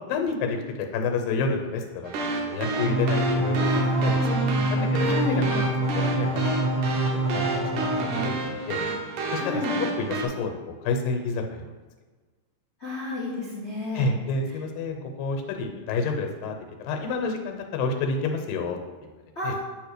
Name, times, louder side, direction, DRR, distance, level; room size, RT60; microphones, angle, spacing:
voice 1, 0.1-4.3 4.7-5.6 5.9-6.4 7.0-7.6 8.1-8.4 8.7-8.8 9.3-10.6 10.8-11.7 14.0-19.1 19.4-19.6, left 4 dB, 85° left, 4 dB, 2.5 m, -29 dB
sound 1, 2.0-10.2, right 3 dB, 75° right, 2.5 m, -30 dB
sound 2, 2.8-8.2, right 1 dB, 15° right, 0.6 m, -26 dB
voice 2, 3.6-4.3 5.0-5.4 9.4-9.8 12.8-14.0 19.3-19.6, left 1 dB, 70° left, -7 dB, 0.6 m, -31 dB
8.6 x 3.3 x 6.6 m, 1.4 s
omnidirectional pair, 3.9 m